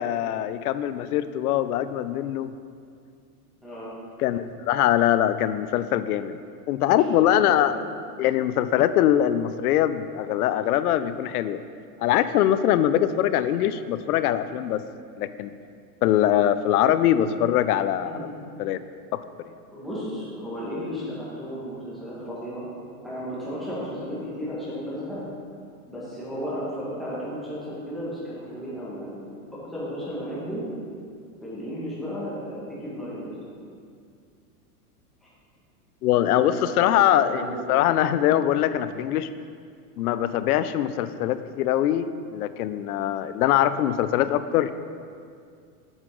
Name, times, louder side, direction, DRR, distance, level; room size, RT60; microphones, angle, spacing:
voice 1, 0.0-2.5 4.2-6.4 6.7-7.8 8.2-11.6 12.0-14.8 15.2-15.5 16.0-18.3 18.6-18.8 19.1-19.2 36.0-39.3 40.0-44.7, left 11 dB, 70° left, 13 dB, 0.6 m, -22 dB
voice 2, 7.0-7.7 18.0-18.3 19.7-22.6 23.0-25.2 25.9-29.3 29.7-30.6 31.4-33.3 36.2-37.6, equal, ahead, -10 dB, 1.7 m, -34 dB
8.1 x 7.4 x 3.8 m, 2.3 s
supercardioid pair, 160°, 46 cm